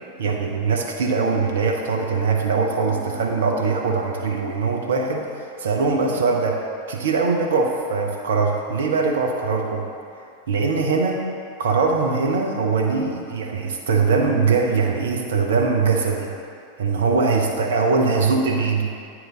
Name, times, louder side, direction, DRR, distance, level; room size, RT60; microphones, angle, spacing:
voice 1, 0.2-5.3 5.6-6.6 6.9-9.9 10.5-11.2 11.6-16.3 16.8-18.9, right 4 dB, 65° right, 1 dB, 0.8 m, -21 dB
9.2 x 4.6 x 3.8 m, 2.5 s
figure-of-eight pair, 90°, 0 cm